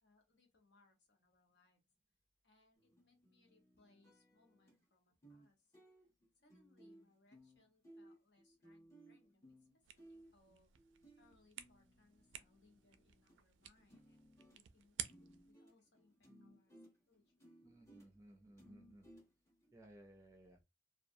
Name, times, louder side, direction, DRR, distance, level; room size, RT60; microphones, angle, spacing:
voice 1, 0.0-1.8 2.4-5.7 6.3-10.7 11.2-17.3, left 3 dB, 65° left, 0.9 m, -74 dB
sound 1, 2.8-4.8 5.2-5.5 5.7-13.4 13.6-19.7, right 1 dB, 15° left, 0.9 m, -64 dB
sound 2, 9.8-15.5, right 10 dB, 85° right, 0.3 m, -53 dB
voice 2, 17.6-19.1 19.7-20.6, right 1 dB, 15° right, 0.4 m, -60 dB
2.3 x 2.1 x 2.6 m
head